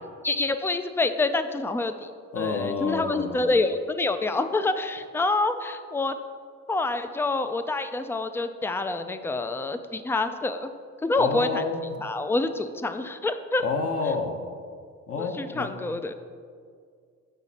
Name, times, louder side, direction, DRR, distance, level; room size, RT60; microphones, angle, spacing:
voice 1, 0.2-2.1 2.3-6.1 6.7-10.7 11.0-11.6 12.0-13.6 15.2-16.1, left 3 dB, 10° left, 10 dB, 0.4 m, -27 dB
voice 2, 2.3-3.4 11.2-11.8 13.6-14.4 15.1-15.7, left 4 dB, 50° left, 5 dB, 0.9 m, -29 dB
8.1 x 4.9 x 4.1 m, 2.1 s
cardioid pair, 90°, 30 cm